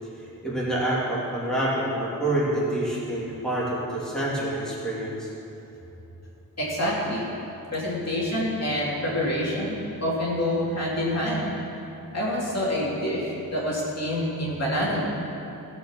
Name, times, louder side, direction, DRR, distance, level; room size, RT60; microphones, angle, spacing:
voice 1, 0.2-5.3, right 1 dB, ahead, -7 dB, 2.9 m, -27 dB
voice 2, 6.6-7.2 7.7-11.6 12.1-15.0, left 1 dB, 45° left, -5 dB, 2.8 m, -27 dB
16.0 x 6.1 x 7.3 m, 3.0 s
wide cardioid pair, 125°, 37 cm